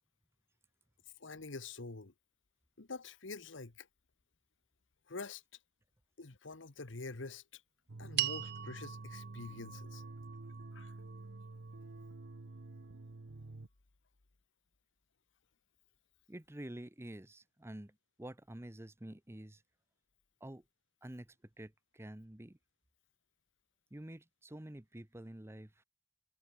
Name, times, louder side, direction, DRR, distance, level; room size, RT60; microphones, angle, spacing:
voice 1, 1.2-2.1 2.8-3.9 5.1-5.4 6.2-7.6 8.0-10.0 10.7-10.9, left 3 dB, 70° left, 1.3 m, -46 dB
sound 1, 7.9-13.7, right 2 dB, 80° right, 0.9 m, -49 dB
sound 2, 8.2-12.6, right 13 dB, 55° right, 0.6 m, -42 dB
voice 2, 16.3-19.6 20.4-20.6 21.0-22.6 23.9-25.8, right 1 dB, 15° right, 0.9 m, -49 dB
head